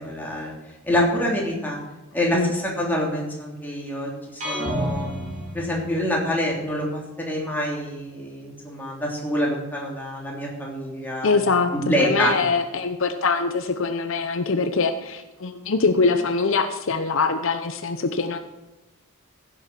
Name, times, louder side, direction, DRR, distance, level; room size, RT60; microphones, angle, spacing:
voice 1, 0.0-1.8 2.1-5.1 5.5-11.4 11.7-12.3, equal, 10° left, -3 dB, 3.2 m, -26 dB
sound 1, 4.4-6.4, equal, 35° right, 4.4 m, -30 dB
voice 2, 11.2-18.4, left 4 dB, 60° left, 8 dB, 0.7 m, -23 dB
15.5 x 7.6 x 6.0 m, 1.1 s
head